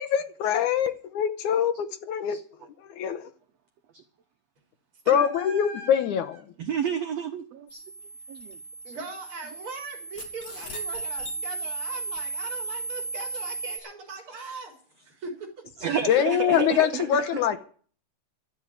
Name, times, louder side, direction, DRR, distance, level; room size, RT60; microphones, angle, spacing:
voice 1, 0.0-2.4 2.8-3.3 5.1-6.4 16.0-17.6, left 9 dB, 75° left, 8 dB, 1.9 m, -24 dB
voice 2, 5.0-6.1 8.8-14.7 15.0-15.9 17.1-17.6, right 3 dB, 35° right, 2 dB, 5.0 m, -40 dB
voice 3, 6.6-7.8 8.3-8.6 15.8-17.2, right 8 dB, 85° right, 6 dB, 1.4 m, -30 dB
sound 1, 7.7-13.8, right 3 dB, 45° left, 3.5 m, -35 dB
12.5 x 8.6 x 8.8 m, 0.43 s
omnidirectional pair, 4.4 m